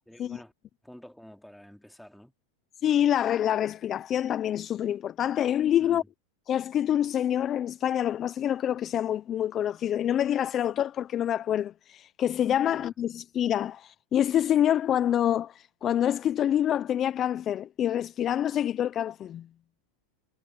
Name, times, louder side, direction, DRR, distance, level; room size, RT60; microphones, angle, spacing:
voice 1, 0.1-0.5 0.8-2.3 5.8-6.1 12.7-12.9, equal, ahead, 2.9 m, -49 dB
voice 2, 2.8-6.0 6.5-19.5, left 10 dB, 35° left, 0.7 m, -26 dB
hypercardioid pair, 115°, 0 cm